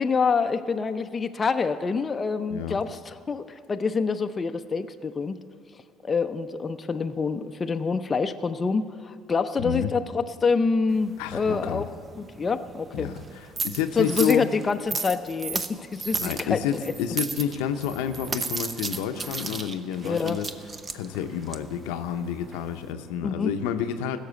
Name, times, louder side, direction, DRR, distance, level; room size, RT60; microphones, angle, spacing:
voice 1, 0.0-5.4 6.0-11.9 12.2-13.1 14.0-16.8 20.0-20.4 23.2-23.5, left 4 dB, 30° left, 8 dB, 0.6 m, -26 dB
voice 2, 2.5-2.8 9.6-9.9 11.2-11.9 12.9-14.4 16.2-20.5 20.9-24.2, left 9 dB, 85° left, 8 dB, 0.7 m, -29 dB
sound 1, 10.9-22.9, right 4 dB, 35° right, 0.7 m, -35 dB
15.5 x 6.6 x 8.2 m, 2.3 s
supercardioid pair, 75°, 0 cm